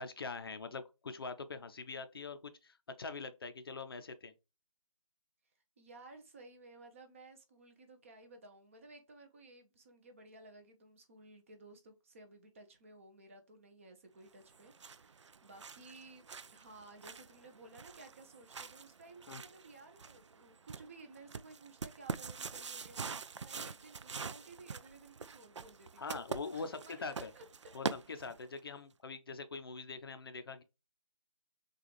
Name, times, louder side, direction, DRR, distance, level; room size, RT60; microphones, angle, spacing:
voice 1, 0.0-4.3 19.3-19.4 23.6-23.7 26.0-27.3 27.7-30.6, left 4 dB, 45° left, 0.6 m, -43 dB
voice 2, 5.8-16.2 16.5-26.2 26.5-27.4, right 2 dB, 25° right, 0.7 m, -56 dB
sound 1, 14.4-28.6, right 5 dB, 60° right, 0.4 m, -45 dB
6.5 x 2.4 x 3.1 m
figure-of-eight pair, 155°, 17 cm